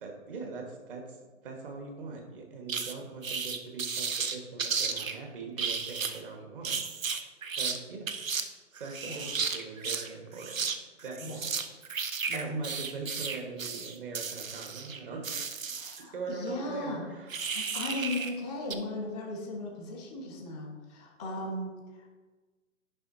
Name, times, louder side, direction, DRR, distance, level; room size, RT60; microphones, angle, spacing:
voice 1, 0.0-1.2 1.4-7.2 7.6-8.1 8.7-10.7 11.0-11.6 12.3-15.3 16.0-17.7, right 4 dB, 40° right, 2 dB, 1.5 m, -41 dB
sound 1, 2.7-2.9 3.2-5.2 5.6-6.2 6.6-7.8 8.1-8.4 8.8-10.1 10.3-10.8 11.0-16.0 17.3-18.3 18.7-18.8, right 5 dB, 80° right, 0.7 m, -33 dB
voice 2, 15.7-17.1 17.5-22.2, left 2 dB, 5° right, -3 dB, 0.4 m, -37 dB
9.7 x 5.6 x 2.7 m, 1.3 s
figure-of-eight pair, 130°, 39 cm